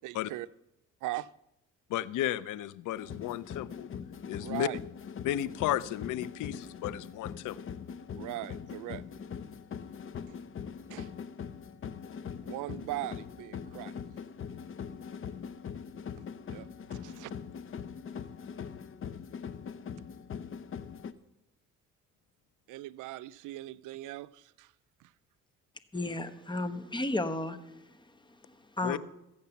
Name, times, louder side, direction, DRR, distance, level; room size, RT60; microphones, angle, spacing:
voice 1, 0.0-0.5 1.0-1.3 4.4-4.8 8.1-9.0 10.3-10.4 10.9-11.1 12.4-13.9 16.2-17.3 22.7-24.7 25.0-25.1, right 17 dB, 90° right, 0.5 m, -40 dB
voice 2, 1.9-3.9 4.3-4.7 5.2-7.6 28.8-29.0, left 13 dB, 80° left, 0.6 m, -33 dB
sound 1, 3.0-21.1, left 7 dB, 45° left, 0.8 m, -42 dB
voice 3, 25.9-29.0, left 2 dB, 15° left, 1.1 m, -34 dB
14.5 x 8.5 x 7.0 m
cardioid pair, 90°, 30 cm